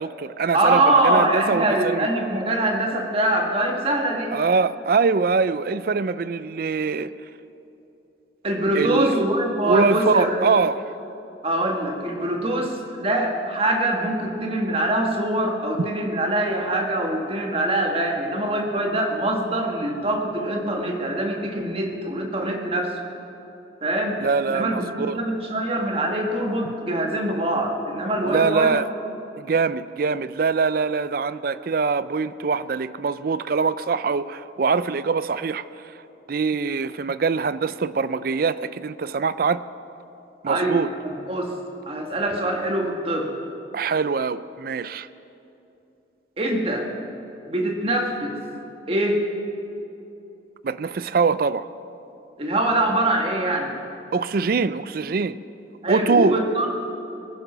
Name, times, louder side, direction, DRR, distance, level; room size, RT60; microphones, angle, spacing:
voice 1, 0.0-2.1 4.3-7.1 8.7-9.1 9.7-10.8 15.8-15.9 24.2-25.2 26.6-26.7 28.2-28.9 29.4-35.9 36.3-39.6 40.4-40.9 43.7-45.1 50.6-51.7 54.1-55.4 55.9-56.4, right 4 dB, 50° right, 16 dB, 0.4 m, -23 dB
voice 2, 0.5-4.3 8.4-10.5 11.4-23.0 23.8-24.2 24.5-28.8 40.5-41.6 41.9-43.3 46.4-46.9 47.5-48.4 48.9-49.2 52.4-53.7 55.8-56.7, right 1 dB, 30° right, 2 dB, 1.6 m, -23 dB
21.0 x 10.0 x 6.0 m, 2.9 s
head